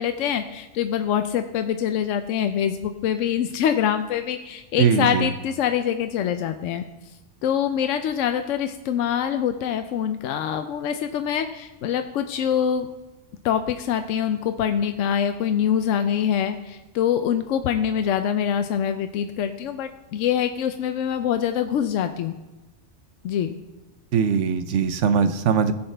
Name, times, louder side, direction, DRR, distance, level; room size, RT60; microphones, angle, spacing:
voice 1, 0.0-6.9 7.4-12.9 13.4-22.4 23.2-23.6, left 9 dB, 80° left, 8 dB, 0.9 m, -24 dB
voice 2, 4.8-5.3 24.1-25.7, right 6 dB, 70° right, 11 dB, 1.0 m, -21 dB
16.5 x 7.1 x 3.3 m, 1.1 s
omnidirectional pair, 1.3 m